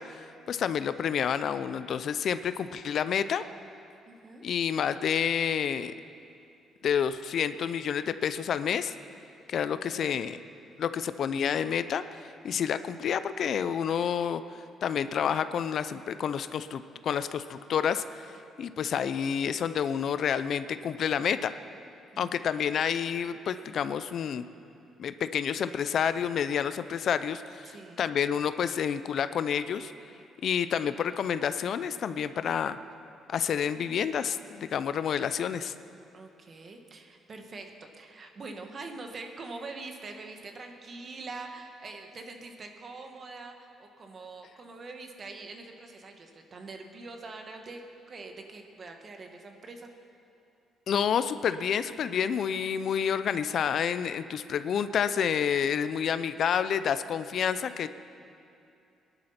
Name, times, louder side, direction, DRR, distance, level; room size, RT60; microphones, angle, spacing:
voice 1, 0.0-3.4 4.4-5.9 6.8-8.9 9.5-10.4 10.8-12.0 12.4-18.3 18.6-21.5 22.2-24.4 25.0-27.6 28.0-29.9 30.4-32.8 33.3-35.7 50.9-57.9, left 8 dB, 60° left, 12 dB, 0.5 m, -29 dB
voice 2, 4.1-4.4 9.9-10.2 22.1-22.7 27.7-28.1 32.7-32.8 36.1-47.8 48.1-49.9, right 3 dB, 45° right, 4 dB, 1.7 m, -44 dB
19.0 x 11.0 x 5.9 m, 2.6 s
cardioid pair, 85°, 0 cm